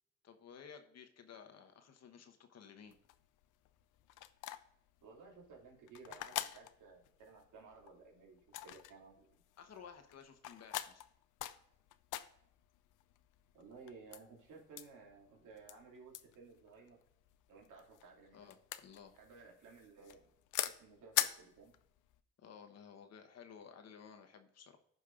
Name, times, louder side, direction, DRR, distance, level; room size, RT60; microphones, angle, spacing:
voice 1, 0.2-2.9 9.6-11.0 18.3-19.1 22.4-24.8, left 7 dB, 60° left, 6 dB, 1.1 m, -55 dB
sound 1, 2.9-22.2, left 14 dB, 85° left, 0.6 m, -44 dB
voice 2, 5.0-9.3 13.5-17.0 17.5-18.6 19.1-20.3 20.6-21.7, right 4 dB, 85° right, -2 dB, 2.6 m, -57 dB
14.5 x 5.4 x 2.5 m, 0.72 s
cardioid pair, 90°, 30 cm